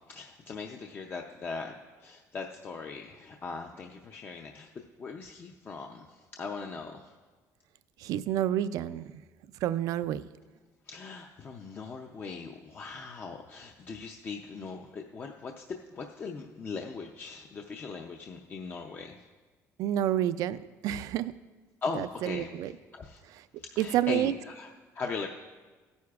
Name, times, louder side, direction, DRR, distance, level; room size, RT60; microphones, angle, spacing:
voice 1, 0.0-1.7 2.0-7.1 10.9-19.2 21.8-22.5 22.9-23.2 23.6-25.3, left 4 dB, 35° left, 2 dB, 0.5 m, -39 dB
voice 2, 8.0-9.1 9.6-10.3 19.8-21.3 22.0-22.7 23.8-24.3, right 12 dB, 70° right, 15 dB, 0.4 m, -29 dB
16.0 x 9.5 x 2.4 m, 1.3 s
cardioid pair, 130°, 6 cm